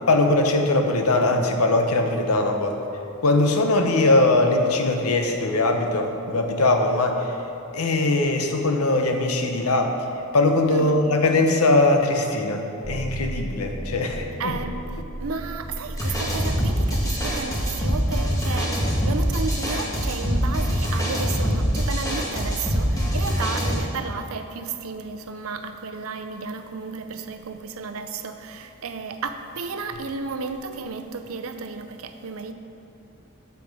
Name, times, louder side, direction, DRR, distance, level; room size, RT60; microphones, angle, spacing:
voice 1, 0.1-2.8 3.2-7.2 7.7-9.9 10.3-14.5, left 2 dB, 80° left, 4 dB, 0.9 m, -21 dB
voice 2, 10.7-11.1 14.4-14.8 15.2-18.7 19.0-32.5, right 4 dB, 70° right, 8 dB, 0.6 m, -33 dB
sound 1, 12.8-19.7, right 1 dB, 15° right, 0.3 m, -36 dB
sound 2, 16.0-23.8, equal, 15° left, 1.7 m, -24 dB
7.8 x 7.1 x 5.3 m, 2.8 s
head